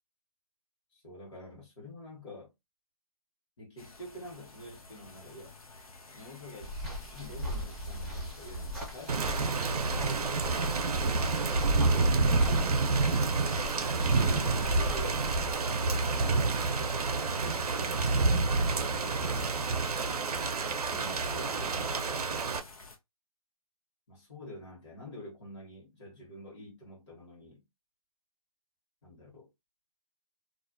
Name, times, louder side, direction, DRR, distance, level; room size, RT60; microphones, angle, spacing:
voice 1, 0.9-2.5 3.6-5.6 6.1-10.5 11.5-13.2 13.8-15.2 16.0-19.3 20.9-22.7 24.1-27.6 29.0-29.5, left 1 dB, 50° left, 1.2 m, -47 dB
sound 1, 3.8-23.0, left 3 dB, 70° left, 0.8 m, -51 dB
sound 2, 6.6-15.6, equal, ahead, 0.5 m, -37 dB
Thunder / Rain, 9.1-22.6, right 3 dB, 80° right, 0.5 m, -28 dB
2.4 x 2.2 x 2.4 m
hypercardioid pair, 160°, 19 cm